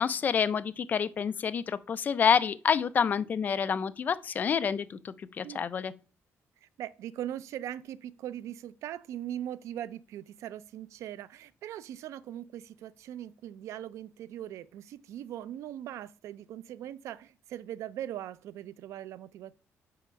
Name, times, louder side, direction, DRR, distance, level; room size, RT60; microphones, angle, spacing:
voice 1, 0.0-5.9, left 7 dB, 35° left, 0.3 m, -28 dB
voice 2, 6.6-19.5, right 11 dB, 85° right, 0.4 m, -40 dB
5.6 x 4.6 x 5.1 m
cardioid pair, 165°, 5 cm